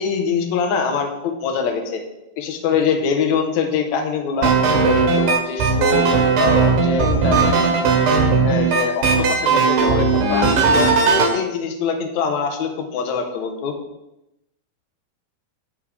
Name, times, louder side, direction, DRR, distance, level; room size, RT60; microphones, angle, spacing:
voice 1, 0.0-2.0 2.4-4.6 4.8-6.1 6.4-7.7 8.4-10.9 11.1-13.7, left 6 dB, 65° left, 3 dB, 2.0 m, -23 dB
sound 1, 4.4-11.3, right 4 dB, 70° right, 3.0 m, -17 dB
10.0 x 8.9 x 3.5 m, 0.90 s
omnidirectional pair, 4.4 m